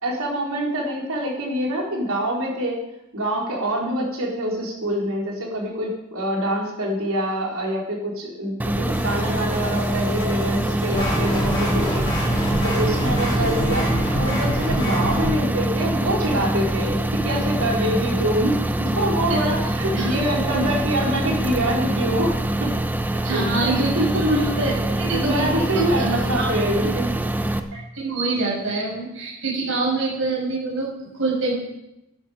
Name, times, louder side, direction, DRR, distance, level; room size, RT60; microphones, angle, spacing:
voice 1, 0.0-2.8 3.1-12.1 12.6-13.9 14.1-22.7 23.1-24.2 25.1-27.1, equal, 80° right, -2 dB, 3.9 m, -25 dB
sound 1, 8.6-27.6, right 1 dB, 10° right, 0.6 m, -24 dB
sound 2, 8.9-13.8, left 1 dB, 85° left, 4.1 m, -37 dB
sound 3, 10.9-15.3, equal, 20° left, 3.6 m, -25 dB
voice 2, 23.2-25.5 25.7-26.5 26.8-26.9 27.7-31.5, right 2 dB, 65° right, -3 dB, 5.7 m, -25 dB
12.5 x 11.0 x 5.0 m, 0.89 s
head